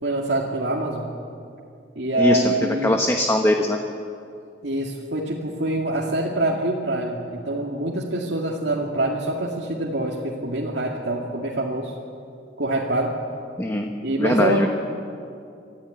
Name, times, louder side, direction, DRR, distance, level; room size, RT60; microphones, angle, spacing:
voice 1, 0.0-1.1 2.0-3.0 4.6-11.9 12.6-13.1 14.0-14.7, right 1 dB, 70° right, -3 dB, 2.4 m, -25 dB
voice 2, 2.2-2.5 2.8-3.8 13.6-13.9 14.2-14.7, left 1 dB, 15° left, 3 dB, 1.1 m, -20 dB
26.0 x 15.0 x 9.4 m, 2.5 s
head